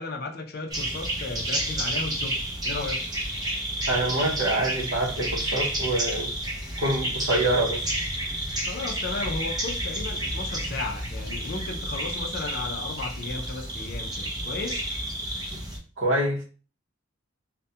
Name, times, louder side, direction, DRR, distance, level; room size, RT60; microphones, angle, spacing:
voice 1, 0.0-2.4 2.6-3.1 8.6-14.9, left 3 dB, 50° left, 0.4 m, -35 dB
sound 1, 0.7-15.8, right 1 dB, 20° right, 0.5 m, -30 dB
voice 2, 3.9-6.3 6.8-7.8 16.0-16.4, right 1 dB, 65° right, 0.7 m, -26 dB
2.3 x 2.1 x 2.7 m
head